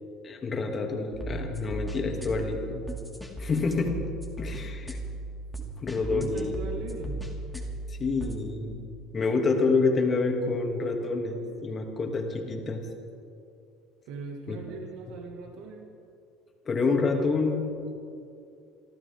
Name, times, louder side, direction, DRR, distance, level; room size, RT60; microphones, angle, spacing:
voice 1, 0.2-2.8 3.4-4.0 4.4-5.0 5.6-6.5 7.9-8.9 9.1-12.9 14.5-14.8 16.6-17.7, left 3 dB, 35° left, 2 dB, 2.7 m, -28 dB
sound 1, 1.1-8.4, right 1 dB, ahead, 2.7 m, -37 dB
voice 2, 6.1-7.2 14.1-15.9, right 4 dB, 70° right, 2 dB, 2.1 m, -39 dB
28.0 x 13.5 x 3.8 m, 2.5 s
supercardioid pair, 85°, 0 cm